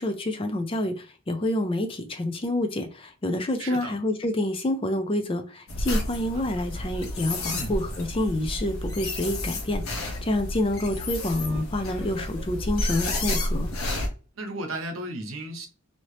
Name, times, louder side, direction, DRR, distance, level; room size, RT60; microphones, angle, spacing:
voice 1, 0.0-13.7, left 1 dB, 25° left, 0.4 m, -28 dB
voice 2, 3.6-3.9 7.5-7.7 14.4-15.7, right 1 dB, 75° right, 0.8 m, -34 dB
sound 1, 5.7-14.1, left 1 dB, 75° left, 0.9 m, -31 dB
sound 2, 6.0-9.3 9.6-9.7 9.9-10.0 11.0-13.1, right 3 dB, 35° right, 0.9 m, -50 dB
2.8 x 2.8 x 3.1 m
head